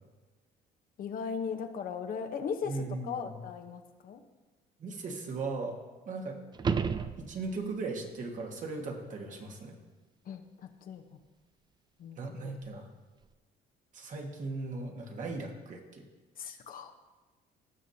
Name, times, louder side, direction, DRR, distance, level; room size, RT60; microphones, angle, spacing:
voice 1, 1.0-2.7 3.0-4.2 10.3-10.4 10.9-11.0 12.0-12.2 12.4-12.5 16.4-16.9, left 6 dB, 55° left, 5 dB, 0.9 m, -37 dB
voice 2, 2.6-3.4 4.8-5.8 6.0-6.4 7.2-9.8 12.2-12.9 13.9-16.0, right 3 dB, 50° right, 2 dB, 1.6 m, -38 dB
sound 1, 6.5-7.8 12.6-12.7, right 6 dB, 25° right, 0.4 m, -32 dB
18.0 x 6.2 x 2.8 m, 1.2 s
cardioid pair, 110°, 17 cm